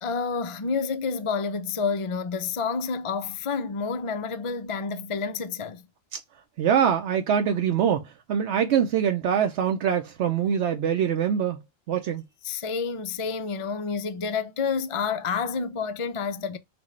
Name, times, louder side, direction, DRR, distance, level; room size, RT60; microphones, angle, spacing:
voice 1, 0.0-5.8 12.4-16.6, left 5 dB, 45° left, 0.4 m, -29 dB
voice 2, 6.6-11.6 11.9-12.2, right 8 dB, 80° right, 0.9 m, -24 dB
6.0 x 2.3 x 3.1 m
omnidirectional pair, 1.1 m